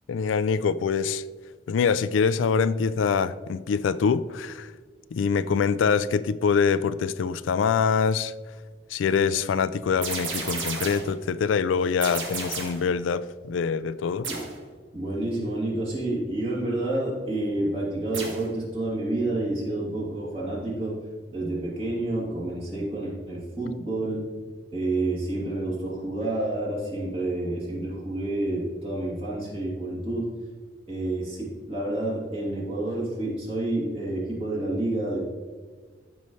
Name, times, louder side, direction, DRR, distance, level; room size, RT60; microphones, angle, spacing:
voice 1, 0.1-1.2 1.7-4.7 5.1-8.3 8.9-14.3, left 6 dB, 90° left, 15 dB, 0.3 m, -24 dB
sound 1, 10.0-11.2 12.0-12.9 14.2-14.6 18.1-18.5, right 4 dB, 85° right, 1.7 m, -32 dB
voice 2, 14.9-21.0 21.3-24.2 24.7-30.3 30.9-35.2, right 2 dB, 30° right, -6 dB, 2.7 m, -29 dB
13.5 x 5.4 x 3.2 m, 1.5 s
head